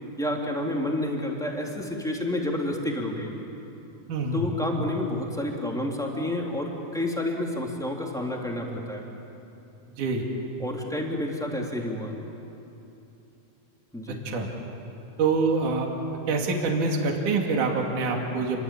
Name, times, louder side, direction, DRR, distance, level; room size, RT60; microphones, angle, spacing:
voice 1, 0.2-3.3 4.3-9.0 10.6-12.1 13.9-14.2, left 1 dB, ahead, -1 dB, 2.6 m, -29 dB
voice 2, 4.1-4.4 10.0-10.2 14.1-14.5 15.2-15.9 16.3-18.6, right 3 dB, 55° right, 1 dB, 3.8 m, -25 dB
29.5 x 23.0 x 8.7 m, 2.9 s
omnidirectional pair, 4.3 m